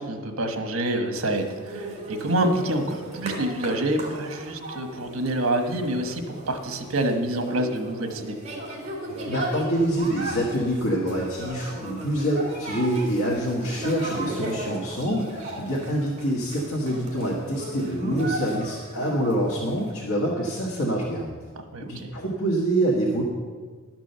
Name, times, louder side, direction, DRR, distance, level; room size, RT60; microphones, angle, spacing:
voice 1, 0.0-8.4 21.7-22.1, right 1 dB, 75° right, 5 dB, 1.2 m, -27 dB
sound 1, 1.3-19.9, right 1 dB, 35° right, 2.4 m, -36 dB
voice 2, 9.3-21.3 21.9-23.2, right 1 dB, 80° left, -3 dB, 1.5 m, -26 dB
12.0 x 6.1 x 6.8 m, 1.5 s
head